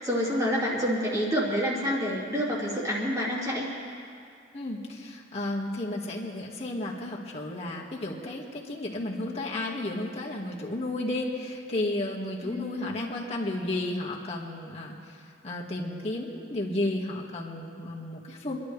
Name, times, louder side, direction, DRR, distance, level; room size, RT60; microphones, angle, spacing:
voice 1, 0.0-3.7 12.4-13.0, equal, 20° right, -6 dB, 2.7 m, -28 dB
voice 2, 4.5-18.6, left 1 dB, 35° left, -3 dB, 2.0 m, -33 dB
26.0 x 11.5 x 3.4 m, 2.3 s
head